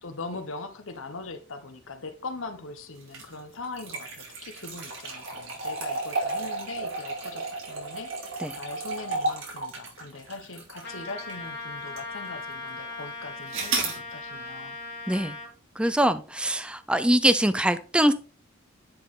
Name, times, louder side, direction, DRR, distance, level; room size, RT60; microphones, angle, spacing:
voice 1, 0.0-8.1 8.6-14.8, left 3 dB, 75° left, 1.1 m, -40 dB
sound 1, 3.0-11.5 12.0-12.1 13.5-14.0, right 2 dB, 70° right, 3.0 m, -33 dB
Trumpet, 10.8-15.5, left 3 dB, 60° left, 2.6 m, -38 dB
voice 2, 15.8-18.1, right 1 dB, 5° right, 0.4 m, -23 dB
10.5 x 4.4 x 3.7 m
head